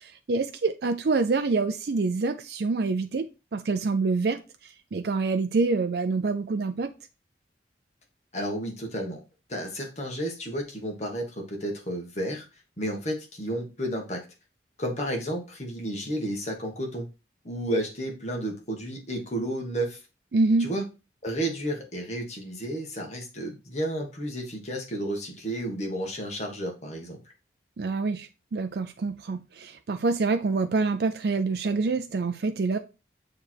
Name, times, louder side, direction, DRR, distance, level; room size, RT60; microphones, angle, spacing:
voice 1, 0.0-6.9 20.3-20.7 27.8-32.8, right 3 dB, 60° right, 0.4 m, -26 dB
voice 2, 8.3-9.2 9.5-12.4 12.8-14.2 14.8-17.1 17.4-20.0 20.6-20.8 21.2-27.2, right 1 dB, 40° left, 1.6 m, -32 dB
6.8 x 3.3 x 4.5 m
head